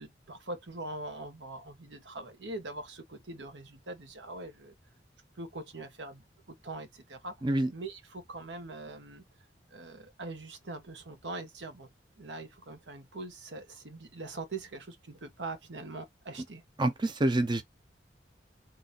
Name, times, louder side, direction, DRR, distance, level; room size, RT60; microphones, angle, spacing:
voice 1, 0.0-4.7 5.4-6.2 6.6-7.3 7.7-9.2 9.7-11.9 12.2-16.6, right 2 dB, 80° right, 1.1 m, -42 dB
voice 2, 16.8-17.6, right 1 dB, 25° right, 0.5 m, -27 dB
3.9 x 2.4 x 3.9 m
head